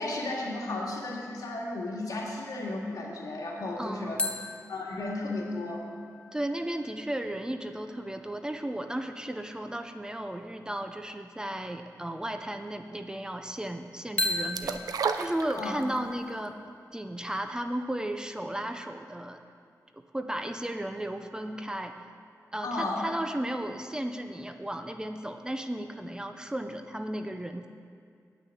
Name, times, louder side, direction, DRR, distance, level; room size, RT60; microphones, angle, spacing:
voice 1, 0.0-4.2 4.7-5.9 15.6-15.8 22.6-23.1, left 2 dB, 75° left, -3 dB, 2.1 m, -34 dB
voice 2, 3.8-4.3 6.3-16.6 16.9-19.4 19.9-21.9 22.5-27.7, right 1 dB, 10° right, 7 dB, 0.5 m, -35 dB
sound 1, 4.2-7.7 14.2-16.9, left 2 dB, 20° left, 0.9 m, -37 dB
sound 2, 14.5-16.1 16.4-16.5, right 6 dB, 85° right, 0.5 m, -31 dB
9.2 x 6.3 x 8.6 m, 2.2 s
wide cardioid pair, 95°, 6 cm